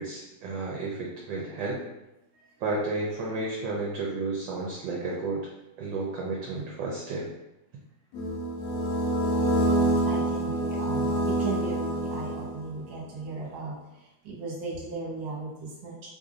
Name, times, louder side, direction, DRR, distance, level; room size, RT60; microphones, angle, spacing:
voice 1, 0.0-1.8 2.6-5.4 5.8-7.3, right 3 dB, 70° right, -3 dB, 1.2 m, -32 dB
sound 1, 8.1-12.8, right 1 dB, 80° left, 0.9 m, -26 dB
voice 2, 10.0-16.1, right 4 dB, 50° right, -4 dB, 1.3 m, -37 dB
3.2 x 2.6 x 3.7 m, 0.95 s
omnidirectional pair, 2.4 m